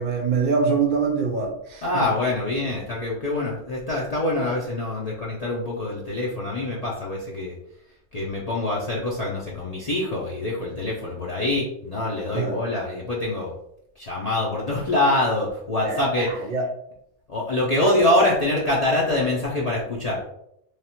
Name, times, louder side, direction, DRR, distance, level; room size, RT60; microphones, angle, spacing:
voice 1, 0.0-2.1 12.3-12.6 15.8-16.7 17.8-18.0, right 4 dB, 55° right, 0.6 m, -24 dB
voice 2, 1.8-7.5 8.1-13.5 14.0-16.3 17.3-20.2, left 2 dB, 40° left, 0.7 m, -25 dB
3.3 x 2.3 x 4.3 m
omnidirectional pair, 1.2 m